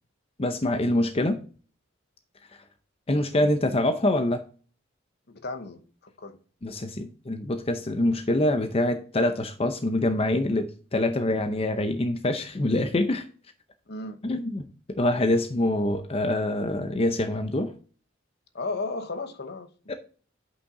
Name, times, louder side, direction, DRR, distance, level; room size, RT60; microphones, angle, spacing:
voice 1, 0.4-1.4 3.1-4.4 6.6-13.2 14.2-14.6 14.9-17.7 19.9-20.0, left 1 dB, 30° left, 0.6 m, -25 dB
voice 2, 5.3-6.4 13.9-14.2 18.5-19.9, left 3 dB, 55° left, 1.0 m, -35 dB
8.2 x 5.8 x 3.7 m
head